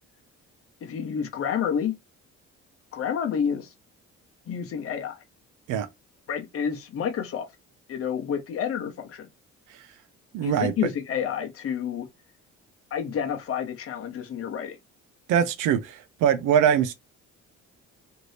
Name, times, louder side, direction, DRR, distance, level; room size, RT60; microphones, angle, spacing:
voice 1, 0.8-2.0 2.9-3.7 4.5-5.2 6.3-7.5 7.9-9.3 10.4-12.1 12.9-14.8, left 8 dB, 50° left, 0.7 m, -29 dB
voice 2, 10.3-10.7 15.3-16.9, right 9 dB, 85° right, 0.5 m, -22 dB
2.7 x 2.6 x 3.2 m
cardioid pair, 90°, 30 cm